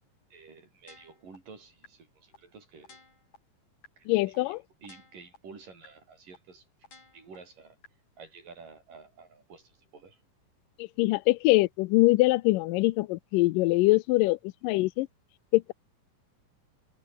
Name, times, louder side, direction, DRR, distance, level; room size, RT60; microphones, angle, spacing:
voice 1, 0.3-3.0 4.0-4.5 4.8-6.7 7.1-7.8 8.2-10.2, right 4 dB, 80° right, 7.6 m, -51 dB
sound 1, 0.9-1.4 1.8-1.9 2.3-2.4 2.8-3.4 3.8-3.9 4.3-4.4 4.8-5.4 5.8-5.9 6.3-6.4 6.8-7.4 7.8-7.9, left 4 dB, 65° left, 9.2 m, -53 dB
voice 2, 4.1-4.6 10.8-15.1 15.5-15.7, left 20 dB, 90° left, 2.3 m, -23 dB
omnidirectional pair, 3.8 m